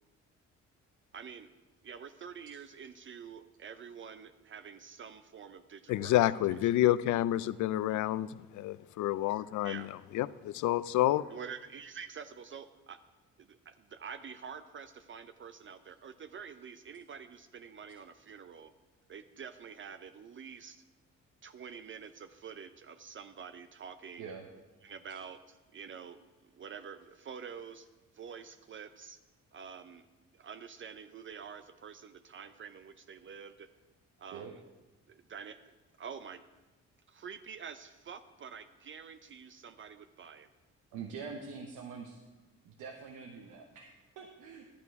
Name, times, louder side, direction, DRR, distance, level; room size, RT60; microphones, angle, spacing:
voice 1, 1.1-1.5 1.8-6.1 6.5-6.7 9.6-9.9 11.3-13.0 13.4-18.7 19.1-20.8 21.4-24.3 24.8-26.2 26.5-27.9 28.1-29.2 29.5-30.1 30.3-33.7 34.2-34.6 35.1-35.6 36.0-36.4 37.1-40.5, right 6 dB, 40° right, 10 dB, 0.5 m, -47 dB
voice 2, 5.9-9.9 10.1-11.3, left 14 dB, 75° left, 18 dB, 0.5 m, -29 dB
voice 3, 24.2-24.5 34.3-34.6 40.9-42.2 42.6-44.7, right 5 dB, 90° right, 2 dB, 1.1 m, -45 dB
11.5 x 8.6 x 4.7 m, 1.2 s
cardioid pair, 90°, 30 cm